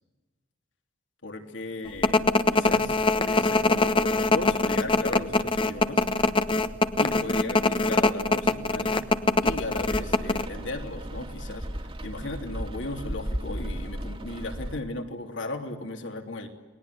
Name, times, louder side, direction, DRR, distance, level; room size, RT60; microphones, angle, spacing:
voice 1, 1.2-6.0 7.0-9.0 9.4-11.6 12.0-16.5, left 2 dB, 65° left, 5 dB, 3.2 m, -36 dB
sound 1, 2.0-10.5, left 3 dB, 25° left, 1.1 m, -22 dB
Rain, 9.4-14.8, equal, 30° right, 2.0 m, -35 dB
29.5 x 20.5 x 9.8 m, 1.2 s
head